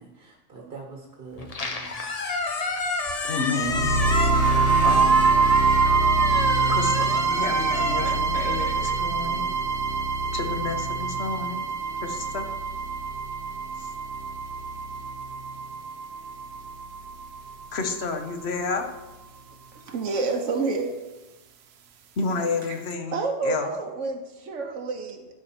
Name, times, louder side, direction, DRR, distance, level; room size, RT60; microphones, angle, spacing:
voice 1, 0.0-2.1, right 4 dB, 50° right, 0 dB, 1.3 m, -44 dB
Squeak, 1.4-9.6, left 3 dB, 35° left, 0.8 m, -31 dB
voice 2, 3.2-4.0 4.8-5.2 6.7-9.5 10.3-11.6 12.0-12.5 13.8-13.9 17.7-18.9 22.2-23.2 23.4-23.7, left 4 dB, 60° left, 5 dB, 1.3 m, -30 dB
sound 1, 3.6-17.6, right 4 dB, 65° right, 0.9 m, -24 dB
voice 3, 19.7-20.9 23.1-25.3, right 4 dB, 90° right, 3 dB, 1.3 m, -28 dB
11.5 x 4.9 x 4.4 m, 1.1 s
omnidirectional pair, 1.2 m